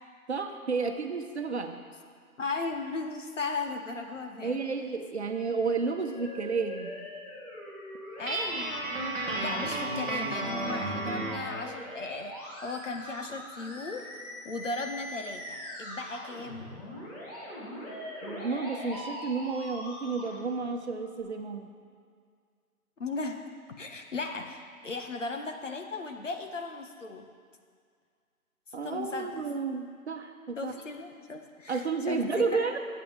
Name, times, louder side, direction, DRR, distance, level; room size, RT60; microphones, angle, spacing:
voice 1, 0.3-1.8 4.4-7.0 18.2-21.7 28.7-30.7 31.7-32.8, right 4 dB, 50° right, 5 dB, 1.1 m, -31 dB
voice 2, 2.4-4.6 8.2-8.8 9.4-14.1 14.4-16.7 23.0-23.5 23.8-27.2 28.8-29.4 30.6-32.7, left 3 dB, 55° left, 5 dB, 1.4 m, -36 dB
Musical instrument, 5.3-21.2, right 1 dB, 25° left, 3.8 m, -42 dB
Guitar, 8.3-11.5, right 1 dB, ahead, 1.0 m, -33 dB
22.5 x 8.7 x 3.4 m, 2.1 s
figure-of-eight pair, 160°, 43 cm